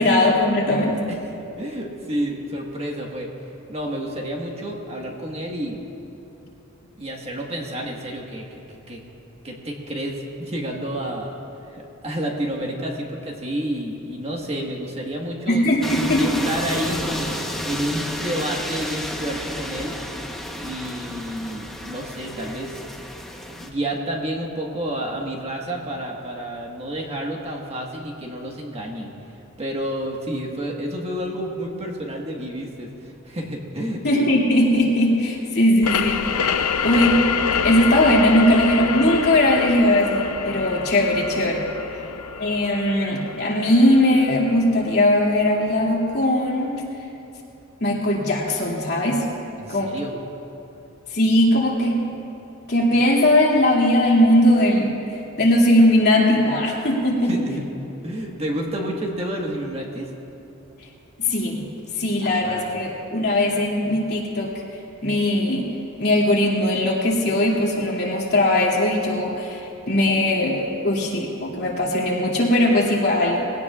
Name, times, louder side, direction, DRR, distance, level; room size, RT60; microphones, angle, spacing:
voice 1, 0.0-1.0 15.5-16.2 34.0-36.3 36.8-37.3 37.6-41.6 42.4-46.8 47.8-49.3 49.7-49.9 51.1-52.2 52.7-55.0 55.4-57.3 61.2-61.6 62.0-64.5 65.0-65.7 66.0-73.5, left 1 dB, 50° left, -3 dB, 2.6 m, -19 dB
voice 2, 1.1-3.4 3.7-5.8 7.0-9.0 9.4-11.3 11.7-20.0 20.5-22.8 23.5-29.1 29.6-34.0 35.9-36.1 49.6-50.1 57.2-57.6 58.0-60.1 62.2-62.8, right 1 dB, 30° right, 0 dB, 1.5 m, -30 dB
sound 1, 15.8-23.7, equal, ahead, 1.0 m, -31 dB
sound 2, 35.8-45.2, left 6 dB, 85° left, 0.6 m, -26 dB
21.0 x 17.0 x 2.4 m, 2.9 s
head